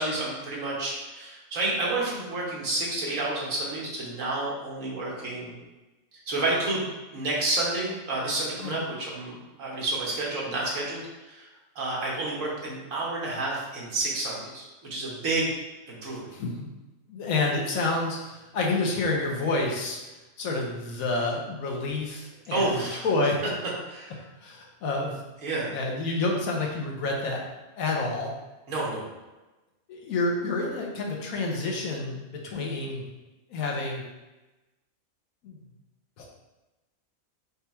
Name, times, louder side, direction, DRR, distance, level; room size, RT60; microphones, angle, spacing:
voice 1, 0.0-5.6 6.3-6.8 7.1-11.5 11.7-15.5 15.9-16.2 22.5-23.1 23.8-24.2 25.4-25.7 28.7-29.0, right 2 dB, 70° right, -4 dB, 1.6 m, -30 dB
voice 2, 16.3-16.7 17.1-23.4 24.4-25.2 25.7-27.4 27.8-28.3 29.9-33.0 33.5-34.0 35.4-35.6 36.2-36.3, left 2 dB, 90° left, -1 dB, 1.3 m, -29 dB
5.2 x 2.3 x 4.3 m, 1.1 s
omnidirectional pair, 1.4 m